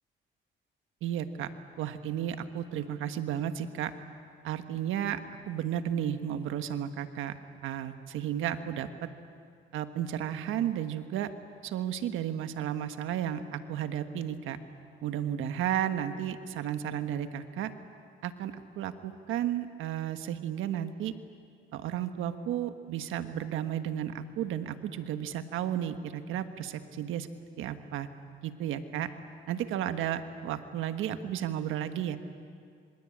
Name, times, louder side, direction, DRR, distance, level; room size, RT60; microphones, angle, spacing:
voice 1, 1.0-1.5 1.8-3.9 4.4-7.4 7.6-9.1 9.7-11.3 11.6-14.6 15.0-17.7 18.2-21.1 21.7-27.3 27.6-28.1 28.4-29.1 29.5-32.2, right 10 dB, 90° right, 9 dB, 1.4 m, -33 dB
26.0 x 25.5 x 8.7 m, 2.3 s
cardioid pair, 90°, 20 cm